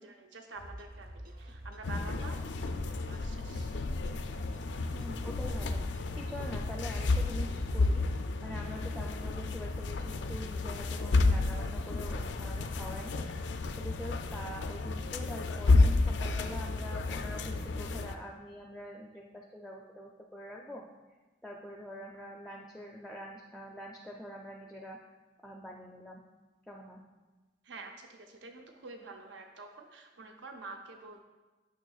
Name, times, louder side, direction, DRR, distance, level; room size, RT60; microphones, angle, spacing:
voice 1, 0.0-3.8 27.6-31.2, right 3 dB, 85° right, 4 dB, 0.6 m, -48 dB
sound 1, 0.5-8.1, equal, 50° right, 0.6 m, -47 dB
sound 2, 1.8-18.2, left 3 dB, 70° left, 0.4 m, -31 dB
voice 2, 4.9-8.0 8.4-13.3 13.7-20.8 21.4-25.0 25.4-26.2 26.7-27.0, equal, ahead, 0 dB, 0.4 m, -45 dB
8.9 x 6.2 x 2.4 m, 1.2 s
head